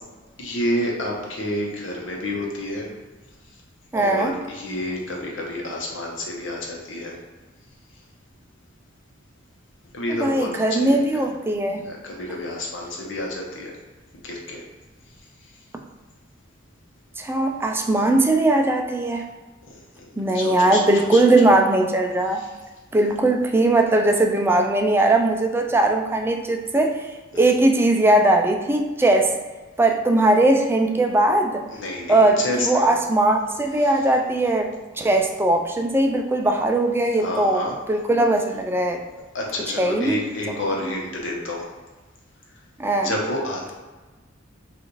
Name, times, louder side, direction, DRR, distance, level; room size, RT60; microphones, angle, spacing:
voice 1, 0.4-2.9 3.5-3.6 3.9-7.2 9.9-11.2 11.8-13.7 14.1-14.6 15.4-15.5 19.7-21.5 22.4-22.5 27.3-27.5 31.7-32.9 33.8-33.9 37.2-37.8 39.3-41.7 43.0-43.7, left 1 dB, 65° left, -1 dB, 0.9 m, -29 dB
voice 2, 3.9-4.4 10.1-11.8 17.2-19.3 20.2-22.4 22.9-29.3 29.8-31.6 32.1-37.6 37.9-39.0 39.8-40.2 40.5-40.6 42.8-43.1, right 2 dB, 10° right, 3 dB, 0.3 m, -19 dB
5.1 x 2.5 x 3.1 m, 1.3 s
head